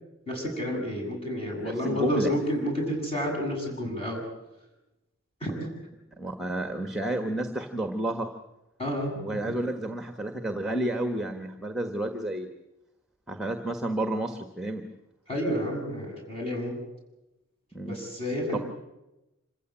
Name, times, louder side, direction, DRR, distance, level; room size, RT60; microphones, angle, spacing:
voice 1, 0.3-4.2 5.4-5.7 8.8-9.1 15.3-16.8 17.9-18.6, equal, 30° left, 1 dB, 7.5 m, -30 dB
voice 2, 1.6-2.3 6.2-8.3 9.1-12.5 13.3-14.8 17.7-18.0 18.5-18.6, right 1 dB, ahead, 6 dB, 1.4 m, -31 dB
26.5 x 15.5 x 8.8 m, 0.97 s
head